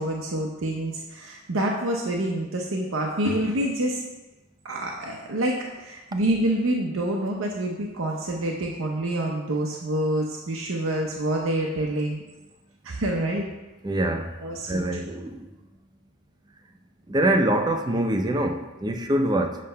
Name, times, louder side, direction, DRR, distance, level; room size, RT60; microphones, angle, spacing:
voice 1, 0.0-4.0 4.6-12.2 12.8-13.5 14.4-14.8, right 1 dB, 85° right, 0 dB, 0.7 m, -27 dB
voice 2, 13.8-14.3 14.7-15.3 17.1-19.6, right 1 dB, 20° right, 4 dB, 0.5 m, -24 dB
7.5 x 3.3 x 5.5 m, 1.1 s
head